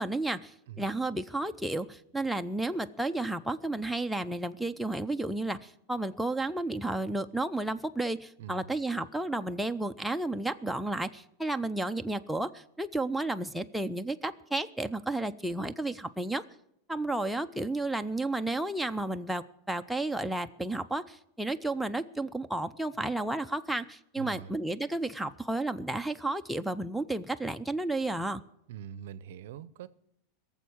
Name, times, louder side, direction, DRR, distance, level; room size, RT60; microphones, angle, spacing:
voice 1, 0.0-16.4 16.9-28.4, right 2 dB, ahead, 0.6 m, -32 dB
voice 2, 8.4-8.7 24.2-24.5 28.7-29.9, right 9 dB, 75° right, 0.6 m, -43 dB
17.5 x 7.2 x 8.6 m
supercardioid pair, 120°, 0 cm